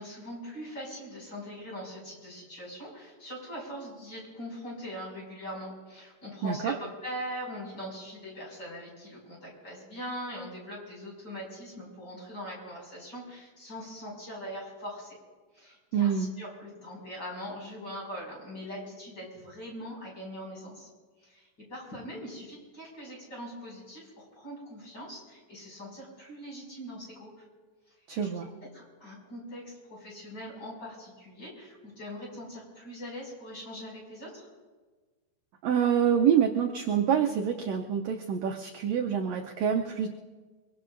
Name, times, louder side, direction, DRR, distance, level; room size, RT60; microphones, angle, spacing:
voice 1, 0.0-15.2 15.5-20.9 21.2-27.4 28.2-28.5 28.7-34.5, equal, 30° left, -4 dB, 6.5 m, -42 dB
voice 2, 6.4-6.7 15.9-16.3 28.1-28.5 35.6-40.1, right 8 dB, 75° right, 3 dB, 1.6 m, -26 dB
24.0 x 23.5 x 2.6 m, 1.3 s
omnidirectional pair, 3.8 m